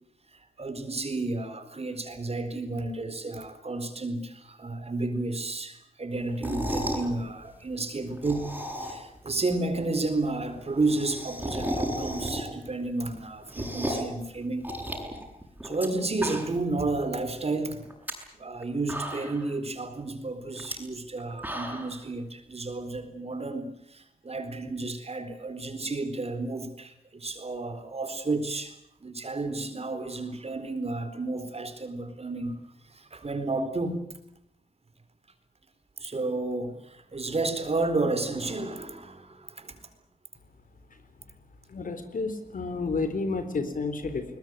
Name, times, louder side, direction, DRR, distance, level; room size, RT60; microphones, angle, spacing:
voice 1, 0.3-14.7 15.6-17.9 18.3-34.0 36.0-39.8, right 2 dB, 45° right, 4.2 m, -32 dB
sound 1, 6.3-7.1 8.1-9.2 9.5-9.6 9.8-9.9 10.1-10.2 10.5-12.7 13.1-14.2 14.6-15.9 16.1-16.7 17.1-17.2 17.8-18.1 18.6-18.7 18.9-19.5 20.6-20.7 21.2-22.0, equal, 10° right, 7.7 m, -33 dB
voice 2, 41.7-44.3, left 3 dB, 65° left, 3.9 m, -30 dB
21.0 x 21.0 x 9.8 m
wide cardioid pair, 80°, 15 cm